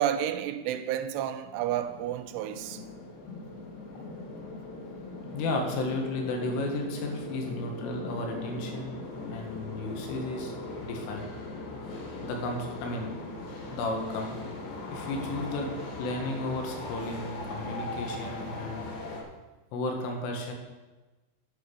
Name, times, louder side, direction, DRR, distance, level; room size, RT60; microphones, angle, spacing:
voice 1, 0.0-2.8, right 10 dB, 90° right, 3.2 m, -30 dB
sound 1, 1.5-19.2, left 2 dB, 65° left, 4.0 m, -39 dB
voice 2, 5.3-10.5 10.8-11.3 12.2-13.1 13.7-14.4 14.9-15.7 16.0-18.9 19.7-20.5, left 2 dB, 85° left, 4.4 m, -33 dB
10.5 x 8.4 x 7.0 m
omnidirectional pair, 5.6 m